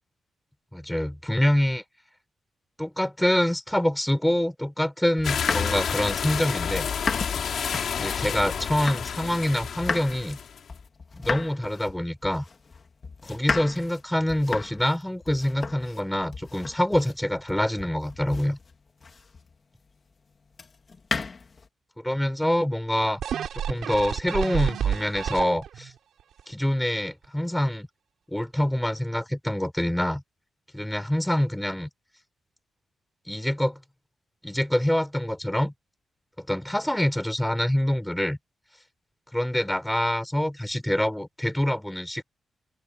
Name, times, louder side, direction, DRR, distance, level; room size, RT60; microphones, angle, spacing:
voice 1, 0.7-1.8 2.8-6.9 8.0-10.4 11.2-12.4 13.2-18.6 22.0-23.2 23.7-25.9 26.5-27.9 28.3-30.2 30.7-31.9 33.3-33.8 34.4-35.7 36.4-38.4 39.3-42.2, left 1 dB, 5° left, 6.5 m, -26 dB
sound 1, 5.2-10.6, left 7 dB, 65° left, 3.3 m, -30 dB
sound 2, 5.2-9.3 9.6-19.5 20.5-21.7, left 4 dB, 35° left, 2.4 m, -35 dB
sound 3, 23.2-25.9 26.4-26.5, right 9 dB, 80° right, 6.9 m, -29 dB
open air
wide cardioid pair, 145°, 0 cm